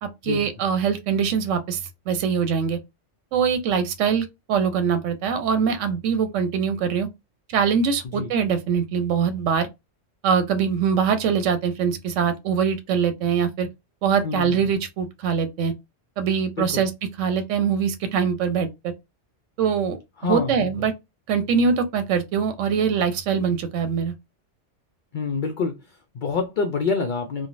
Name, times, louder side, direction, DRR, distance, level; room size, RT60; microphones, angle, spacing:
voice 1, 0.0-1.8 2.1-2.8 3.3-7.1 7.5-9.7 10.2-13.7 14.0-15.7 16.2-16.9 17.2-18.9 19.6-20.0 20.2-20.9 21.3-24.1, right 6 dB, 85° right, 0.9 m, -23 dB
voice 2, 14.2-14.7 16.6-16.8 20.2-20.7 25.1-27.5, left 4 dB, 60° left, 0.5 m, -27 dB
3.1 x 2.2 x 2.5 m
omnidirectional pair, 1.2 m